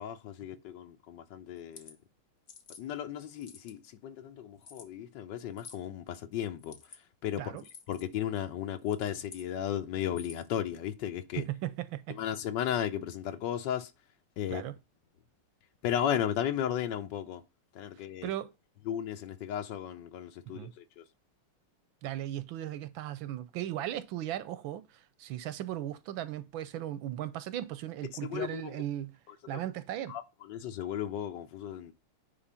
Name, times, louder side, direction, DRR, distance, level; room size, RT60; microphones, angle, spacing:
voice 1, 0.0-2.0 2.8-6.8 7.2-7.5 7.9-11.4 12.1-13.9 14.4-14.6 15.8-17.4 17.7-18.3 18.9-21.0 28.2-28.8 30.1-31.9, left 10 dB, 65° left, 1.2 m, -35 dB
sound 1, 1.6-1.9 2.5-2.8 3.3-3.9 4.6-4.9 5.6-5.9 6.6-7.0 7.6-8.0 8.8-9.5 10.1-10.5, left 5 dB, 45° left, 1.1 m, -51 dB
voice 2, 11.3-12.2 14.5-14.8 18.2-18.5 20.5-20.7 22.0-29.2 29.5-30.1, right 12 dB, 75° right, 1.3 m, -37 dB
9.8 x 3.5 x 5.6 m
omnidirectional pair, 2.4 m